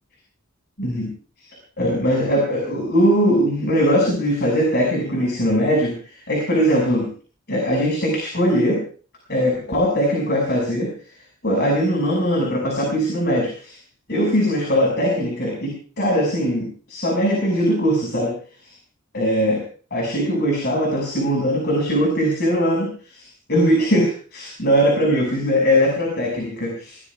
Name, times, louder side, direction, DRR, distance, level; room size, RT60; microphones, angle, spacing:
voice 1, 0.8-1.1 1.8-6.0 6.3-7.1 7.5-8.8 9.3-10.9 11.4-13.7 14.1-18.4 19.1-19.6 19.9-23.2 23.5-27.0, equal, 50° left, 0 dB, 6.2 m, -20 dB
22.0 x 19.0 x 2.5 m, 0.40 s
head